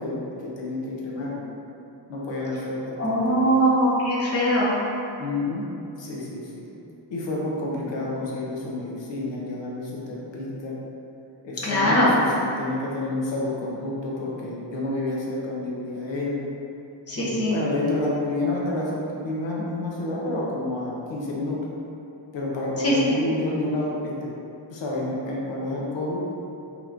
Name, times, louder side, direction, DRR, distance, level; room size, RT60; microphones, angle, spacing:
voice 1, 0.0-1.5 2.1-3.6 5.2-5.6 6.0-6.6 7.1-10.7 11.4-12.3 12.6-16.4 17.1-21.6 22.3-24.3 24.7-26.2, left 2 dB, 75° left, -4 dB, 0.9 m, -29 dB
voice 2, 3.0-4.8 11.6-12.1 17.1-17.6 22.8-23.2, equal, 30° left, -6 dB, 0.7 m, -21 dB
5.4 x 3.0 x 2.6 m, 2.8 s
wide cardioid pair, 160°, 45 cm